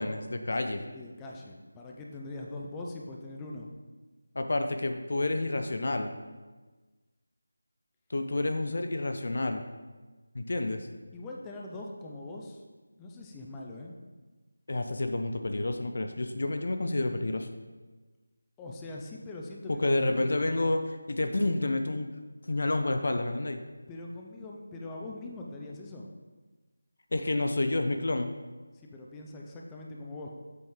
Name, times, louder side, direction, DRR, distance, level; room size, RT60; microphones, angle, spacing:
voice 1, 0.0-0.9 4.3-6.1 8.1-9.6 10.3-10.9 14.7-17.5 19.8-22.1 22.5-23.6 27.1-28.3, left 2 dB, 55° left, 6 dB, 0.5 m, -29 dB
voice 2, 0.9-3.7 11.1-12.7 13.0-13.9 18.6-20.2 23.9-26.1 28.7-30.3, left 2 dB, 10° left, -1 dB, 0.5 m, -42 dB
7.6 x 5.3 x 3.6 m, 1.3 s
figure-of-eight pair, 165°, 0 cm